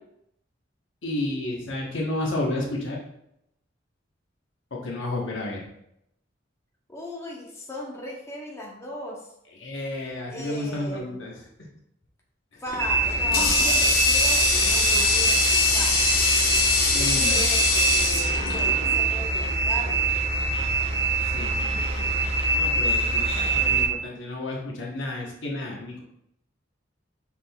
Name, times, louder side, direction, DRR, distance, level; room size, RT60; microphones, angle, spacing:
voice 1, 1.0-3.0 4.7-5.6 9.6-11.3 16.9-17.4 21.2-26.0, left 1 dB, 70° left, -2 dB, 1.0 m, -32 dB
voice 2, 6.9-9.3 10.3-11.2 12.6-15.9 16.9-20.2, equal, 15° left, -3 dB, 0.8 m, -37 dB
Water tap faucet, 12.7-19.1, left 4 dB, 55° left, 0.8 m, -23 dB
sound 1, 12.8-23.9, right 3 dB, 35° right, 0.7 m, -24 dB
6.0 x 3.6 x 2.3 m, 0.78 s
head